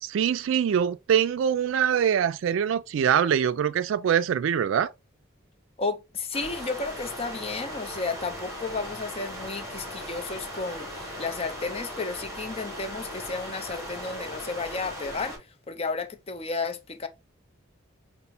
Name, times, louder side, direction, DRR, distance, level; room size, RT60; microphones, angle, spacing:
voice 1, 0.0-4.9, right 8 dB, 75° right, 0.3 m, -24 dB
voice 2, 5.8-15.4 15.7-17.1, left 4 dB, 30° left, 0.6 m, -33 dB
sound 1, 6.3-15.4, equal, 15° right, 2.7 m, -38 dB
5.3 x 2.1 x 4.1 m
head